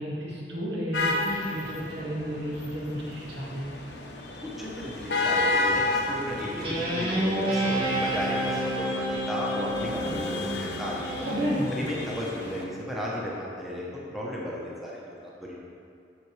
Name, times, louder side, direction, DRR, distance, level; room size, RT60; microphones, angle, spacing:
voice 1, 0.0-3.7 11.2-11.8, equal, 85° right, -5 dB, 1.6 m, -32 dB
sound 1, 0.9-12.6, left 2 dB, 75° left, 0.8 m, -32 dB
voice 2, 4.4-11.1 11.7-15.0 15.4-15.6, equal, ahead, -5 dB, 0.8 m, -35 dB
Guitar, 6.6-11.4, right 1 dB, 30° right, 1.4 m, -29 dB
7.6 x 6.4 x 3.2 m, 2.5 s
head